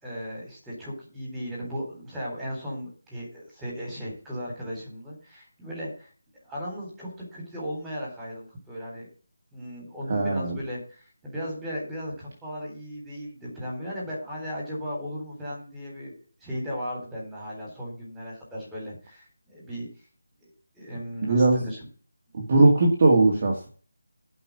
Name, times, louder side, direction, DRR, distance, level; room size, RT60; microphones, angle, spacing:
voice 1, 0.0-6.1 6.4-9.1 9.5-16.1 16.4-19.9 20.4-20.5 20.7-21.8, equal, 5° right, -5 dB, 3.7 m, -36 dB
voice 2, 10.1-10.6 21.2-21.6 22.3-23.7, right 2 dB, 30° right, -1 dB, 2.1 m, -20 dB
11.0 x 5.5 x 7.5 m, 0.39 s
figure-of-eight pair, 175°, 0 cm